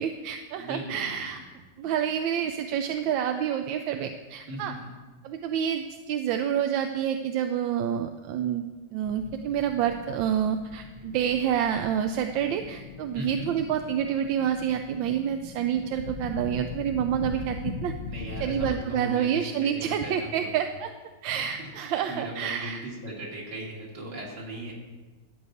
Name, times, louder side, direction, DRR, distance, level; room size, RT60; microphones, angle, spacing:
voice 1, 0.0-1.4 1.8-4.7 5.2-8.6 8.9-17.9 18.4-20.9 21.2-22.8, right 9 dB, 85° right, 6 dB, 1.3 m, -28 dB
voice 2, 0.6-1.2 4.5-4.7 13.1-13.5 18.0-20.5 21.6-21.7 22.1-24.7, right 1 dB, 65° right, -2 dB, 3.0 m, -37 dB
sound 1, 9.0-18.7, left 5 dB, 65° left, 1.1 m, -40 dB
13.0 x 4.8 x 8.3 m, 1.3 s
omnidirectional pair, 2.1 m